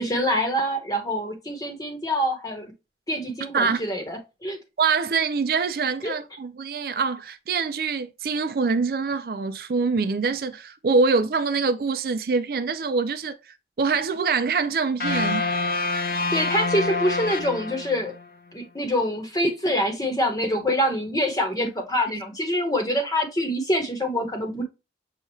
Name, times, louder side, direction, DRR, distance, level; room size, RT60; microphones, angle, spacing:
voice 1, 0.0-2.7 3.1-4.6 6.0-6.1 16.3-18.1 18.5-24.6, equal, 20° left, 1.0 m, -25 dB
voice 2, 4.8-15.5 22.1-22.2, right 4 dB, 55° right, 0.4 m, -24 dB
sound 1, 15.0-18.2, left 3 dB, 55° left, 0.6 m, -26 dB
6.8 x 2.4 x 3.0 m
head